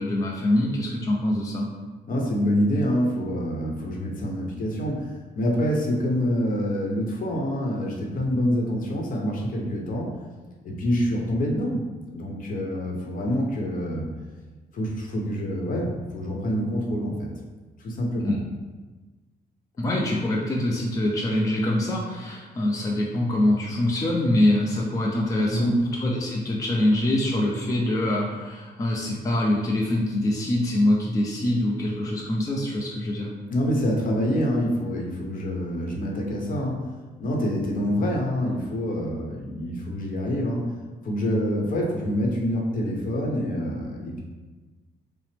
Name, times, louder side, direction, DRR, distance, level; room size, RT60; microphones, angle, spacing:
voice 1, 0.0-1.7 18.2-18.4 19.8-25.7 26.0-33.3, left 1 dB, 20° left, -3 dB, 0.5 m, -24 dB
voice 2, 2.1-10.2 10.6-11.9 12.1-14.0 14.7-17.3 17.8-18.3 25.5-25.7 33.5-36.9 37.2-40.7 41.0-44.2, equal, 50° left, -1 dB, 0.8 m, -26 dB
5.7 x 2.0 x 3.4 m, 1.3 s
cardioid pair, 140°, 17 cm